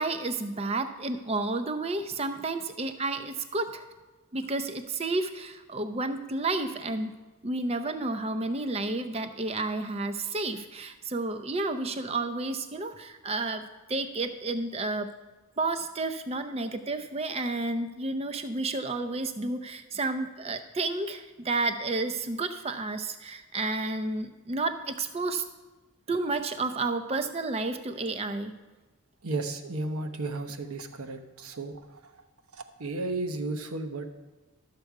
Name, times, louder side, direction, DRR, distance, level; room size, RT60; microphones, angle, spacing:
voice 1, 0.0-3.8 4.3-7.1 7.4-15.1 15.6-25.4 26.1-28.5, right 2 dB, 30° right, 8 dB, 0.5 m, -31 dB
voice 2, 29.2-32.2 32.5-34.1, right 2 dB, 80° right, 7 dB, 0.9 m, -34 dB
12.5 x 6.7 x 4.7 m, 1.2 s
head